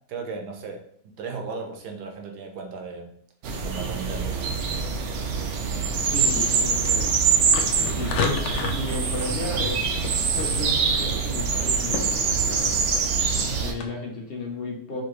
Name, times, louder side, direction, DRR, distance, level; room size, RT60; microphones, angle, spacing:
voice 1, 0.1-3.1 3.6-4.4, right 4 dB, 70° right, 3 dB, 1.3 m, -36 dB
sound 1, 3.4-13.7, right 5 dB, 85° right, 0.6 m, -24 dB
sound 2, 6.0-13.9, left 5 dB, 80° left, 0.6 m, -35 dB
voice 2, 6.1-7.1 7.8-10.0 10.3-12.8 13.6-15.0, left 2 dB, 45° left, -1 dB, 0.9 m, -34 dB
4.9 x 2.8 x 3.1 m, 0.66 s
omnidirectional pair, 1.9 m